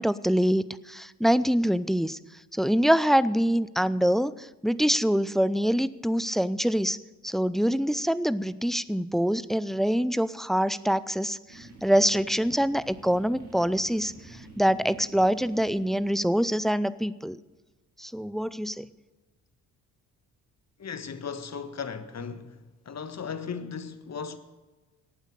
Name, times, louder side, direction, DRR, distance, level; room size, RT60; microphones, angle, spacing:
voice 1, 0.0-2.2 2.5-7.0 7.2-17.4 18.0-18.9, equal, ahead, 0.5 m, -25 dB
sound 1, 11.5-16.5, right 2 dB, 80° right, 3.5 m, -48 dB
voice 2, 20.8-22.6 22.8-24.4, left 6 dB, 35° left, 1.4 m, -36 dB
15.0 x 9.0 x 6.5 m
hypercardioid pair, 45°, 44 cm